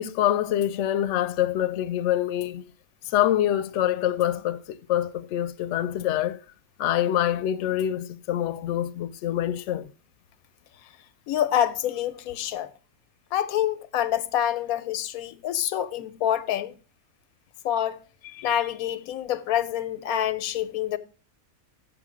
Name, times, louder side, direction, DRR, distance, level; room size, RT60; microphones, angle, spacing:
voice 1, 0.0-2.6 3.0-6.4 6.8-9.9, left 12 dB, 70° left, 0.8 m, -25 dB
voice 2, 11.3-12.7 13.3-16.7 17.6-21.0, left 11 dB, 90° left, 1.1 m, -27 dB
7.0 x 6.9 x 4.8 m
omnidirectional pair, 1.5 m